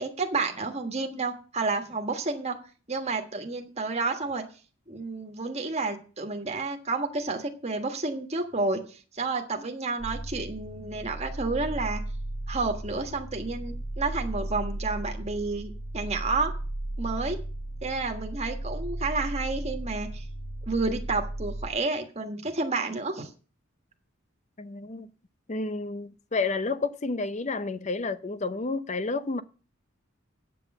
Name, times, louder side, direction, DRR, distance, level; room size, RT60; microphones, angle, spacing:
voice 1, 0.0-2.6 2.9-4.4 4.9-12.0 12.5-16.5 17.0-17.4 17.8-20.2 20.6-23.3, right 3 dB, 30° right, 1.5 m, -30 dB
sound 1, 10.0-21.7, right 1 dB, 80° left, 2.8 m, -35 dB
voice 2, 24.6-25.1 25.5-29.4, left 3 dB, 35° left, 0.6 m, -30 dB
8.9 x 6.2 x 8.0 m
head